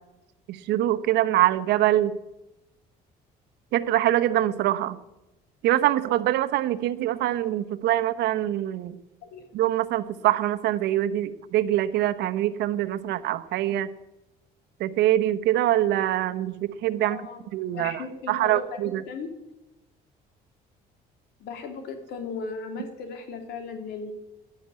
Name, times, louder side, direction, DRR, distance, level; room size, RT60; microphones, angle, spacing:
voice 1, 0.5-2.2 3.7-5.0 5.6-9.0 9.5-13.9 14.8-17.2 17.5-19.0, right 13 dB, 80° right, 12 dB, 1.0 m, -24 dB
voice 2, 17.0-17.5 17.7-19.3 21.4-24.1, left 4 dB, 80° left, 6 dB, 2.9 m, -37 dB
11.5 x 11.0 x 9.6 m, 0.94 s
cardioid pair, 110°, 17 cm